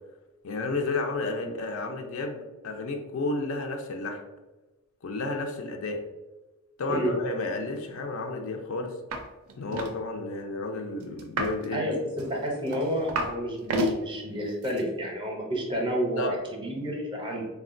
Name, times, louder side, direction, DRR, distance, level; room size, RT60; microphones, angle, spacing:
voice 1, 0.4-4.2 5.0-6.0 6.8-9.0 9.6-11.9 16.2-16.4, left 3 dB, 65° left, 4 dB, 0.4 m, -32 dB
sound 1, 9.1-9.2 9.5-9.9 11.2-11.7 12.2-13.4 13.6-14.0 14.6-14.8, right 1 dB, 70° right, 0.4 m, -30 dB
voice 2, 12.3-17.4, equal, 20° right, -1 dB, 0.5 m, -30 dB
3.6 x 2.1 x 2.5 m, 1.1 s
head